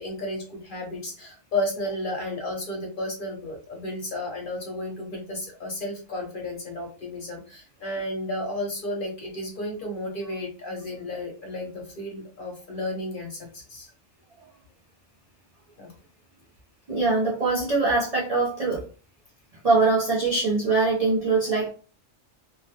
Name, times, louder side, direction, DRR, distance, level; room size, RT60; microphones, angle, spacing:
voice 1, 0.0-13.9 15.8-15.9, left 1 dB, 50° left, 1 dB, 0.8 m, -33 dB
voice 2, 16.9-18.8 19.6-21.7, right 3 dB, 55° right, -4 dB, 0.4 m, -22 dB
2.3 x 2.1 x 2.7 m, 0.37 s
omnidirectional pair, 1.3 m